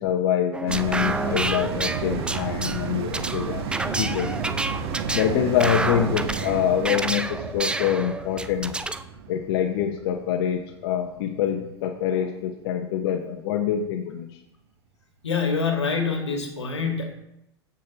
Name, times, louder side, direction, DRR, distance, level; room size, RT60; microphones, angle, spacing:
voice 1, 0.0-3.7 4.0-4.3 5.1-8.7 9.3-14.3, left 9 dB, 60° left, 4 dB, 0.8 m, -25 dB
sound 1, 0.5-9.0, right 2 dB, 5° right, 0.4 m, -29 dB
sound 2, 0.7-11.4 11.8-11.9, right 6 dB, 60° right, 1.0 m, -32 dB
voice 2, 15.2-17.1, left 5 dB, 85° left, 3 dB, 1.6 m, -25 dB
15.0 x 5.2 x 2.9 m, 0.84 s
hypercardioid pair, 90°, 14 cm